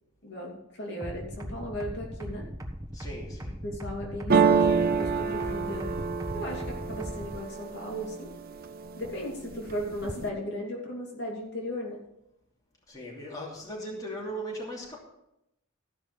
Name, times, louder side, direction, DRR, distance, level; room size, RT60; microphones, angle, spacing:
voice 1, 0.2-2.5 3.6-5.9 6.3-8.3 8.9-12.0, equal, 50° left, -2 dB, 2.7 m, -36 dB
sound 1, 1.0-7.4, equal, 15° right, 1.4 m, -38 dB
voice 2, 2.9-3.6 12.9-15.0, right 1 dB, 15° left, -4 dB, 2.9 m, -38 dB
sound 2, 4.3-8.2 8.6-9.2 9.5-10.3, right 5 dB, 45° right, 0.6 m, -26 dB
14.5 x 5.9 x 7.0 m, 0.84 s
head